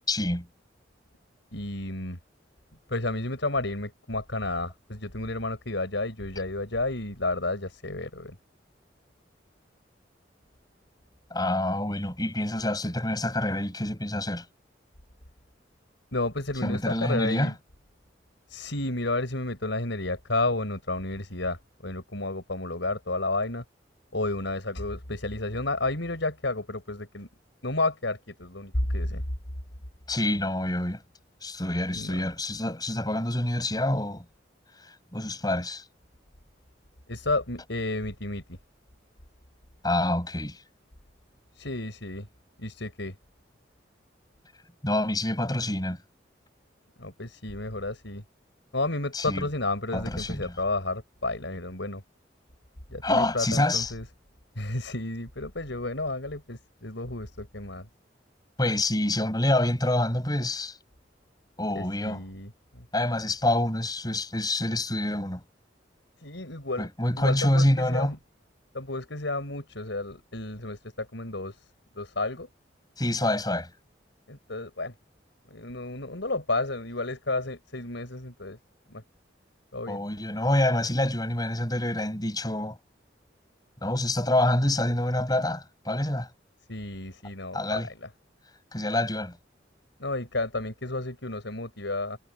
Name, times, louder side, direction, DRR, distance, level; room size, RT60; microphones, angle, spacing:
voice 1, 0.1-0.5 11.3-14.5 16.6-17.5 30.1-31.0 31.4-34.2 34.8-35.8 39.8-40.6 44.8-46.0 49.1-49.5 49.9-50.5 53.0-53.9 58.6-60.8 61.6-62.2 62.9-65.4 66.8-68.1 73.0-73.7 79.9-82.8 83.8-86.3 87.5-87.9 88.7-89.4, left 1 dB, 20° left, 5.9 m, -27 dB
voice 2, 1.5-2.2 2.9-8.4 16.1-17.5 18.5-23.6 24.1-27.3 27.6-29.2 31.9-32.2 37.1-38.4 41.6-42.3 42.6-43.1 47.0-48.2 48.7-52.0 52.9-54.0 54.6-57.9 61.7-62.8 66.2-66.9 67.2-68.2 68.7-71.6 71.9-72.5 74.3-74.9 75.5-78.6 78.9-79.0 79.7-80.0 86.7-88.1 90.0-92.2, left 2 dB, 80° left, 4.8 m, -31 dB
head